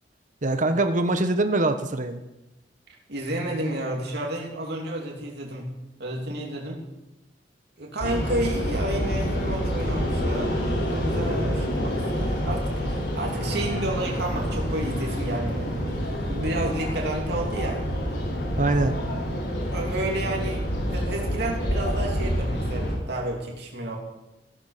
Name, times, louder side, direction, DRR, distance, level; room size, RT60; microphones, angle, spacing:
voice 1, 0.4-2.2 11.8-11.9 18.6-19.0, right 2 dB, 45° right, 8 dB, 1.1 m, -23 dB
voice 2, 3.1-5.7 6.0-6.8 7.8-17.8 19.7-24.0, right 1 dB, 65° right, -1 dB, 3.0 m, -31 dB
sound 1, 8.0-23.0, equal, 65° left, 5.5 m, -27 dB
15.0 x 13.0 x 6.6 m, 0.98 s
head